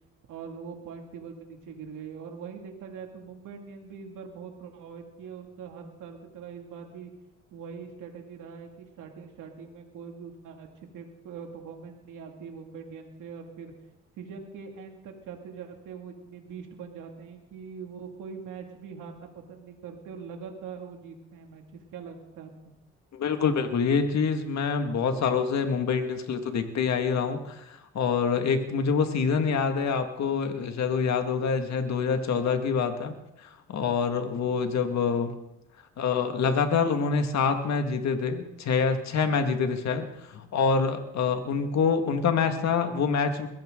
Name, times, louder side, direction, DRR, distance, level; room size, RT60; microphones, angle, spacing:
voice 1, 0.3-7.1 7.5-10.7 10.9-13.7 14.2-21.6 21.9-22.5, right 6 dB, 85° right, 3 dB, 2.5 m, -42 dB
voice 2, 23.1-33.1 33.7-35.3 36.0-43.5, left 5 dB, 65° left, 6 dB, 2.0 m, -26 dB
22.0 x 15.5 x 3.9 m, 0.89 s
cardioid pair, 90°, 30 cm